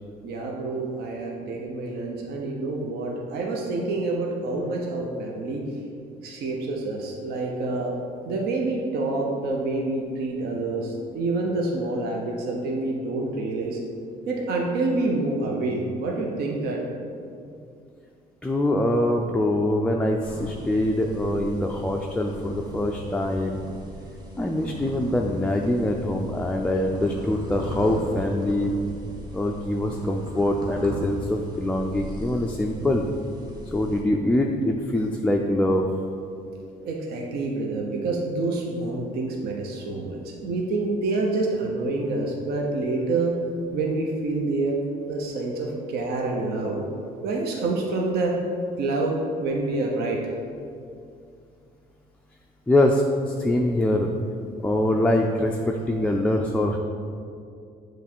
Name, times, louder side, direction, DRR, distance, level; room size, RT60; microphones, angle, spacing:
voice 1, 0.2-5.6 6.2-7.9 8.3-13.8 14.3-16.8 36.8-43.4 43.7-44.8 45.1-46.8 47.2-48.4 48.8-50.3, right 2 dB, 70° right, 0 dB, 0.8 m, -27 dB
voice 2, 18.4-23.6 24.4-28.7 29.3-33.1 33.7-35.9 52.7-54.1 54.6-56.8, left 1 dB, 5° left, 0 dB, 0.3 m, -24 dB
sound 1, 20.2-34.0, left 1 dB, 25° right, 1.1 m, -38 dB
7.1 x 3.1 x 4.4 m, 2.4 s
cardioid pair, 110°, 17 cm